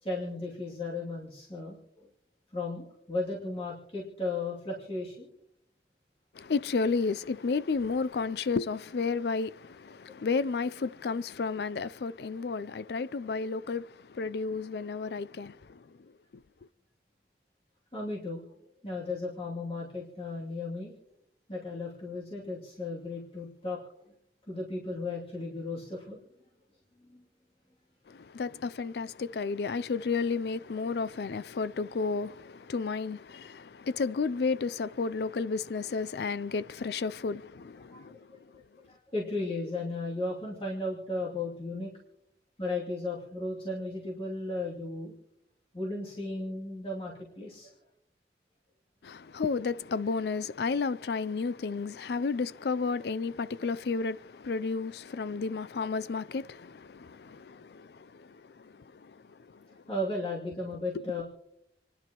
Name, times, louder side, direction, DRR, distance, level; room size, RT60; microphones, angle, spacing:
voice 1, 0.0-2.1 2.5-5.3 10.1-10.2 17.9-18.4 18.8-20.9 21.5-23.8 24.5-26.2 27.1-27.2 37.9-38.4 38.8-41.9 42.6-45.1 45.7-47.7 59.7-61.2, left 2 dB, 30° left, 2.7 m, -35 dB
voice 2, 6.3-16.4 28.1-38.5 49.0-59.8 60.9-61.0, left 4 dB, 65° left, 0.4 m, -32 dB
28.5 x 11.0 x 3.0 m
head